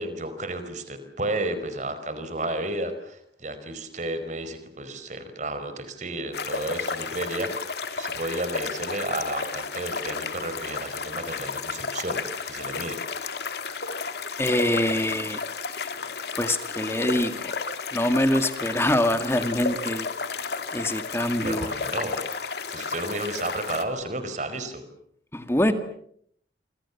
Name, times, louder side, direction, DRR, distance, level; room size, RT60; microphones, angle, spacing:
voice 1, 0.0-13.0 21.4-22.2 22.7-24.8, right 2 dB, 45° right, 10 dB, 4.8 m, -32 dB
sound 1, 6.3-23.8, left 5 dB, 65° left, 2.5 m, -32 dB
voice 2, 14.4-15.4 16.4-17.5 17.9-20.1 20.7-21.7 25.3-25.7, left 1 dB, 15° left, 8 dB, 1.9 m, -24 dB
28.0 x 26.0 x 7.2 m, 0.68 s
head